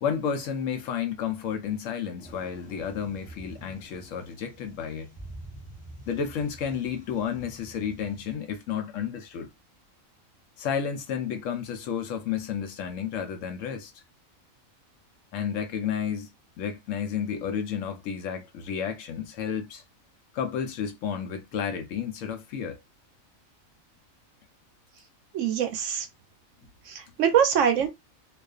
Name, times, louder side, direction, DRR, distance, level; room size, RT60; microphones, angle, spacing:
voice 1, 0.0-5.1 6.1-9.5 10.6-13.9 15.3-16.3 16.6-19.8 20.3-22.8, left 7 dB, 70° left, 0.9 m, -31 dB
sound 1, 2.2-8.3, right 1 dB, 10° left, 0.5 m, -47 dB
voice 2, 25.3-26.1 26.8-27.9, right 8 dB, 70° right, 0.9 m, -23 dB
2.4 x 2.4 x 2.3 m
omnidirectional pair, 1.4 m